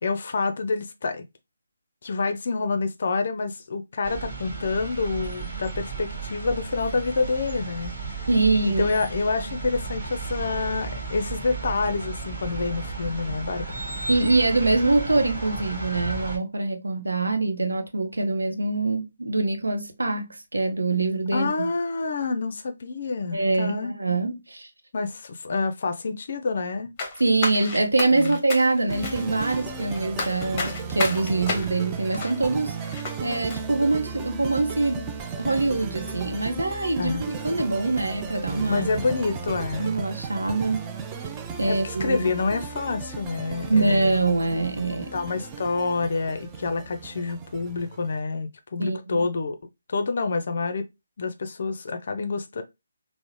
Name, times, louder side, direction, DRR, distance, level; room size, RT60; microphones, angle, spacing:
voice 1, 0.0-1.2 2.0-8.0 8.8-13.7 21.3-23.9 24.9-26.9 28.1-28.4 37.0-37.2 38.7-39.9 41.7-44.2 45.1-49.6 49.9-50.9 51.2-52.6, left 4 dB, 45° left, 0.4 m, -27 dB
sound 1, 4.0-16.4, right 4 dB, 35° right, 1.2 m, -34 dB
voice 2, 8.3-8.8 14.1-21.7 23.3-24.7 27.2-32.8 33.2-38.9 39.8-40.8 41.6-42.3 43.7-45.1 48.8-49.2, right 3 dB, 70° right, 0.7 m, -24 dB
sound 2, 27.0-33.2 33.5-33.6, left 3 dB, 20° left, 0.7 m, -32 dB
sound 3, 28.9-48.2, right 5 dB, 15° right, 0.4 m, -35 dB
3.6 x 2.0 x 3.0 m
figure-of-eight pair, 145°, 0 cm